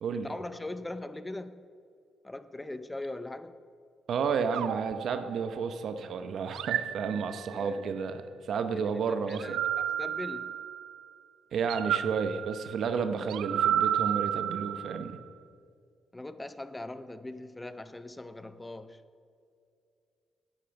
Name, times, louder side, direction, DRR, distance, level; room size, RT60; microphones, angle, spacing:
voice 1, 0.1-1.6 2.2-3.6 7.5-7.9 8.7-10.6 16.1-19.0, left 2 dB, 15° left, 12 dB, 0.5 m, -41 dB
voice 2, 4.1-9.6 11.5-15.2, right 6 dB, 65° right, 9 dB, 0.8 m, -31 dB
sound 1, 4.5-5.9 6.5-7.8 9.3-11.0 11.7-15.2, right 10 dB, 80° right, 0.4 m, -32 dB
10.5 x 8.5 x 5.9 m, 2.4 s
cardioid pair, 90°, 0 cm